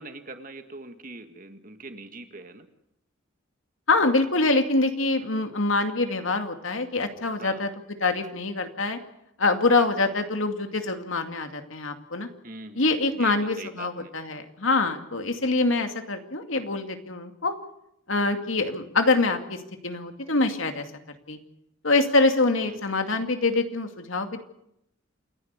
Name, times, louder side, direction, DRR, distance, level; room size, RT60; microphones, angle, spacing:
voice 1, 0.0-2.7 5.2-5.3 7.4-7.6 12.4-12.9 13.2-14.1 22.7-22.8, right 3 dB, 45° right, 7 dB, 1.9 m, -42 dB
voice 2, 3.9-7.7 8.0-9.0 9.4-12.3 12.7-17.5 18.1-19.6 19.8-20.8 21.3-21.4 21.8-24.4, left 3 dB, 80° left, 6 dB, 2.4 m, -25 dB
28.5 x 11.0 x 9.6 m, 0.81 s
head